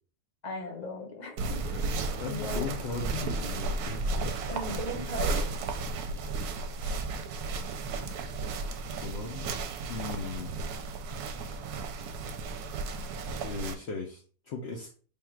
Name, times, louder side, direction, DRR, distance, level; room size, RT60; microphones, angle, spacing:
voice 1, 0.4-2.8 4.5-5.6, left 2 dB, 35° left, 1 dB, 0.8 m, -38 dB
sound 1, 1.4-13.7, right 3 dB, 75° right, 1.1 m, -34 dB
voice 2, 2.2-4.5 6.8-7.0 9.0-9.6 9.9-10.6 13.4-14.9, left 4 dB, 60° left, 0 dB, 0.7 m, -38 dB
3.5 x 2.4 x 4.4 m, 0.41 s
omnidirectional pair, 1.7 m